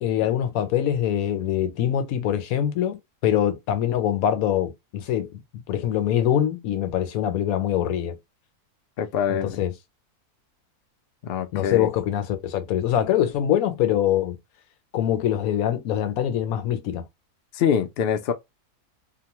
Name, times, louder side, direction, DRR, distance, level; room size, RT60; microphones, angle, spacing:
voice 1, 0.0-5.4 5.7-8.2 9.3-9.7 11.5-14.4 14.9-17.0, left 10 dB, 70° left, 1.0 m, -24 dB
voice 2, 9.0-9.6 11.2-11.9 17.5-18.3, left 8 dB, 90° left, 0.5 m, -24 dB
3.0 x 2.1 x 2.8 m
omnidirectional pair, 1.6 m